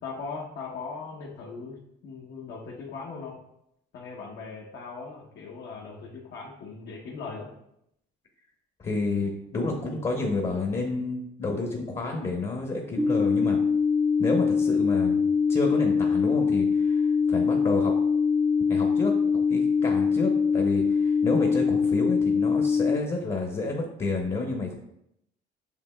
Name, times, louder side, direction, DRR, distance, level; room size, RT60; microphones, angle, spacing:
voice 1, 0.0-3.4 3.9-7.5, left 4 dB, 65° left, -3 dB, 0.9 m, -39 dB
voice 2, 8.8-13.6 14.2-17.9 18.7-24.8, left 3 dB, 30° left, 2 dB, 0.8 m, -30 dB
sound 1, 13.0-23.0, left 5 dB, ahead, 0.4 m, -23 dB
6.6 x 2.8 x 2.2 m, 0.77 s
supercardioid pair, 75°, 20 cm